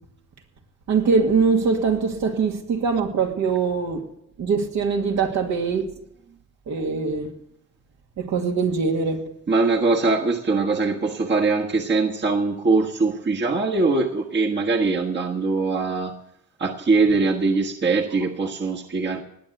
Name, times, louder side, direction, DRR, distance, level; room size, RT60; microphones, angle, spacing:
voice 1, 0.9-4.0 4.4-5.8 6.7-7.3 8.2-9.2, right 5 dB, 70° right, 2.4 m, -22 dB
voice 2, 9.5-16.1 16.6-19.2, right 3 dB, 35° right, 1.5 m, -22 dB
19.0 x 8.0 x 6.9 m
cardioid pair, 90°, 30 cm